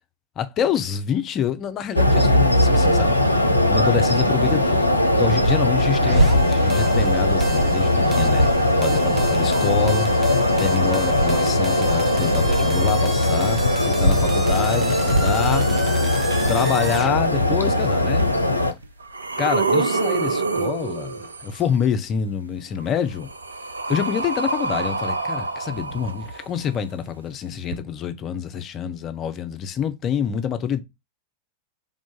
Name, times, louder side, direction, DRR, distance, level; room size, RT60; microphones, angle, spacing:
voice 1, 0.4-3.2 3.7-8.5 8.8-15.7 16.5-18.3 19.4-23.3 23.9-30.8, left 8 dB, 30° left, 0.5 m, -27 dB
sound 1, 1.9-18.7, left 1 dB, 90° left, 0.4 m, -19 dB
sound 2, 6.0-17.1, right 3 dB, 15° right, 0.6 m, -35 dB
sound 3, 18.2-18.3 18.8-21.6 22.8-26.7 27.7-27.8, right 3 dB, 75° right, 0.4 m, -26 dB
3.5 x 2.5 x 3.8 m
figure-of-eight pair, 90°, 0 cm